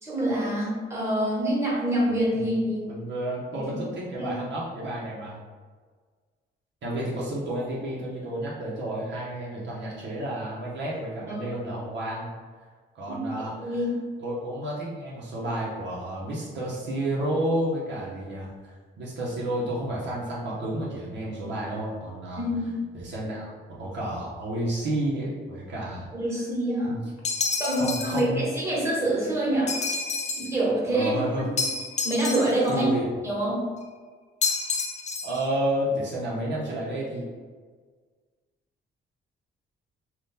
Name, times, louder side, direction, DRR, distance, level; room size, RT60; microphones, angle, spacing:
voice 1, 0.0-2.8 3.5-3.6 4.2-4.3 11.3-11.5 13.1-13.3 13.6-14.0 22.4-22.7 26.1-27.0 27.6-29.7 30.4-31.1 32.0-32.9 33.2-33.6, right 1 dB, 15° right, -5 dB, 1.2 m, -26 dB
voice 2, 2.9-5.4 6.8-12.3 12.9-13.7 14.2-22.4 22.9-26.1 26.9-27.0 27.8-28.4 30.9-31.4 32.7-33.1 35.2-37.3, right 1 dB, 65° right, -5 dB, 0.8 m, -31 dB
sound 1, 27.2-28.2 29.7-30.5 31.6-32.7 34.4-35.4, left 4 dB, 35° left, 0.5 m, -29 dB
2.7 x 2.4 x 3.6 m, 1.5 s
cardioid pair, 90°, 20 cm